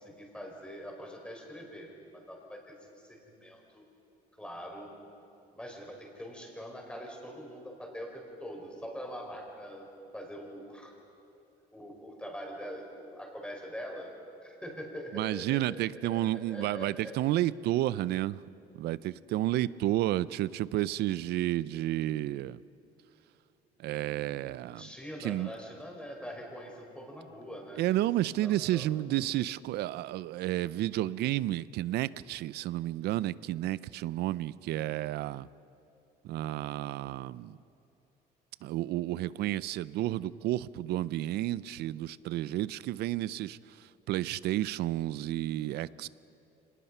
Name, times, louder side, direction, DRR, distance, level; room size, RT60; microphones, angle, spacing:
voice 1, 0.0-3.8 4.4-4.9 5.5-9.9 10.1-10.9 11.7-14.1 14.4-17.1 24.7-27.8 28.4-28.9, equal, 5° left, 0 dB, 4.8 m, -43 dB
voice 2, 15.1-18.4 18.7-22.6 23.8-24.9 25.2-25.5 27.8-35.5 36.2-37.6 38.6-46.1, right 14 dB, 75° right, 19 dB, 0.5 m, -31 dB
25.5 x 19.5 x 5.6 m, 2.7 s
cardioid pair, 110°, 17 cm